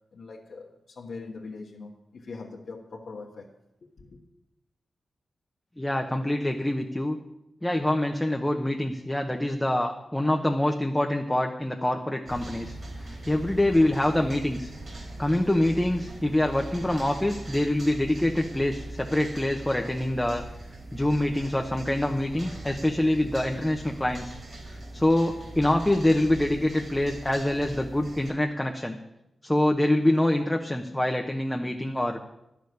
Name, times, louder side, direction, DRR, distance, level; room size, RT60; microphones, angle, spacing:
voice 1, 0.1-3.5 3.8-4.2, left 4 dB, 75° left, -4 dB, 1.6 m, -42 dB
voice 2, 5.8-7.2 7.6-14.7 15.2-20.4 20.9-24.4 24.9-29.0 29.4-32.2, left 1 dB, 10° left, 2 dB, 1.0 m, -25 dB
sound 1, 12.3-28.3, right 2 dB, 50° right, 3.6 m, -41 dB
11.5 x 6.7 x 9.5 m, 0.89 s
wide cardioid pair, 95°, 0 cm